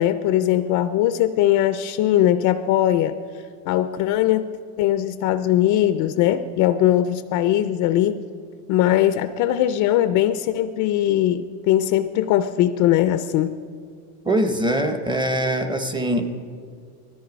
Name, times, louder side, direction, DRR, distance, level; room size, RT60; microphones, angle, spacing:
voice 1, 0.0-3.2 3.7-4.5 4.8-8.2 8.7-13.6, left 12 dB, 45° left, 11 dB, 0.4 m, -20 dB
voice 2, 14.2-16.3, right 1 dB, 10° right, 7 dB, 0.6 m, -22 dB
19.0 x 13.5 x 5.2 m, 2.2 s
cardioid pair, 155°, 47 cm